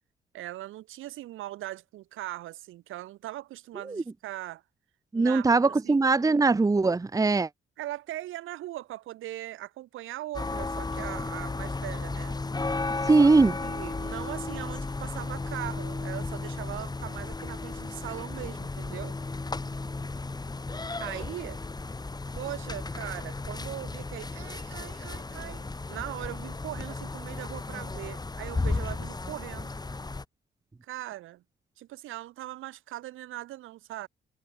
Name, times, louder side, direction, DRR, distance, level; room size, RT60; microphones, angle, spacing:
voice 1, 0.3-4.6 5.1-6.4 7.8-12.4 13.1-13.3 13.6-19.1 21.0-21.6 22.3-29.7 30.8-31.4 31.8-34.1, right 15 dB, 90° right, 6.6 m, -40 dB
voice 2, 5.1-7.5 13.1-13.5, right 3 dB, 15° right, 0.9 m, -21 dB
sound 1, 10.3-30.2, left 3 dB, 20° left, 3.1 m, -34 dB
cardioid pair, 90°, 20 cm